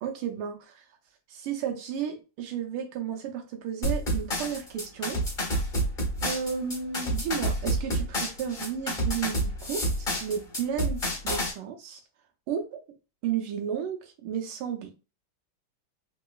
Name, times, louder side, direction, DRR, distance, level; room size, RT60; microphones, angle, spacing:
voice 1, 0.0-0.6 1.3-5.2 6.2-12.0 12.5-12.8 13.2-14.9, right 8 dB, 80° right, 3 dB, 1.5 m, -33 dB
sound 1, 3.8-11.5, right 1 dB, 30° left, 1.3 m, -29 dB
3.8 x 2.8 x 2.3 m, 0.31 s
omnidirectional pair, 2.4 m